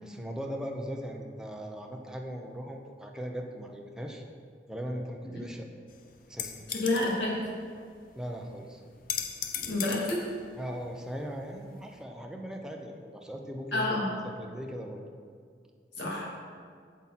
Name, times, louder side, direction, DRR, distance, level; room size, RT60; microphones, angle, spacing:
voice 1, 0.0-4.2 4.7-5.7 6.3-6.7 8.1-8.8 10.5-13.9 14.2-15.0, equal, 5° right, 1 dB, 0.7 m, -39 dB
sound 1, 5.9-12.0, left 9 dB, 50° left, 0.6 m, -40 dB
voice 2, 6.8-7.4 9.6-10.2 13.7-14.1 16.0-16.4, left 2 dB, 90° left, -4 dB, 2.3 m, -29 dB
8.1 x 7.4 x 4.2 m, 2.1 s
head